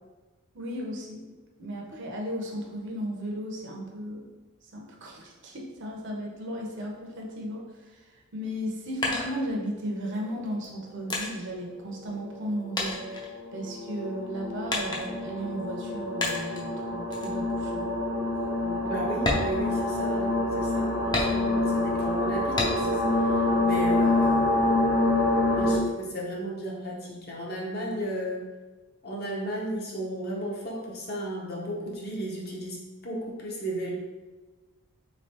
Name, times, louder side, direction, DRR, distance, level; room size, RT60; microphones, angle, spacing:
voice 1, 0.5-1.2 1.6-4.3 4.7-13.1 13.5-17.9 18.6-18.8, equal, 55° right, 0 dB, 0.6 m, -35 dB
sound 1, 8.5-10.0 10.6-12.5 12.8-13.9 14.7-15.3 16.2-16.7 17.1-17.4 17.8-17.9 18.3-18.5 19.1-20.3 21.1-21.8 22.6-23.1 23.5-24.3, left 2 dB, 20° left, 0.5 m, -32 dB
sound 2, 10.4-10.5 12.0-25.8, left 2 dB, 75° left, 0.8 m, -27 dB
voice 2, 18.8-25.0 25.5-28.5 29.0-33.9, right 1 dB, 45° left, -3 dB, 0.8 m, -35 dB
3.7 x 3.2 x 2.8 m, 1.2 s
head